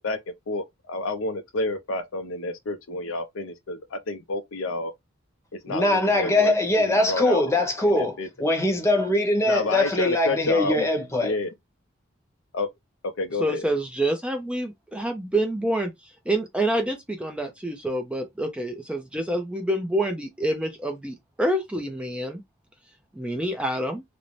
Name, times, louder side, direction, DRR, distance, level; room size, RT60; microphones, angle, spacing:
voice 1, 0.0-4.9 5.5-6.5 6.8-7.4 7.9-8.3 9.4-10.9 11.2-11.5 12.5-12.7 13.2-13.6, left 2 dB, 85° left, 0.5 m, -29 dB
voice 2, 5.7-11.3, left 1 dB, 15° left, 0.8 m, -22 dB
voice 3, 13.4-15.9 16.3-22.4 23.1-24.0, right 1 dB, 5° right, 0.4 m, -27 dB
2.6 x 2.0 x 3.0 m
head